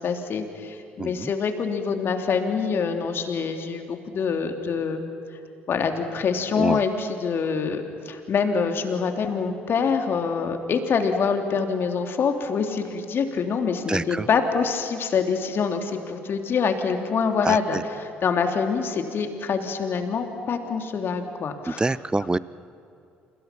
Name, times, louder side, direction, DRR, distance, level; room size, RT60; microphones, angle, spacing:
voice 1, 0.0-5.0 5.7-21.8, left 5 dB, 45° left, 5 dB, 3.1 m, -25 dB
voice 2, 1.0-1.3 6.6-6.8 13.9-14.3 17.4-17.8 21.7-22.4, right 2 dB, 15° right, 19 dB, 0.8 m, -26 dB
30.0 x 29.5 x 6.0 m, 2.6 s
figure-of-eight pair, 55°, 5 cm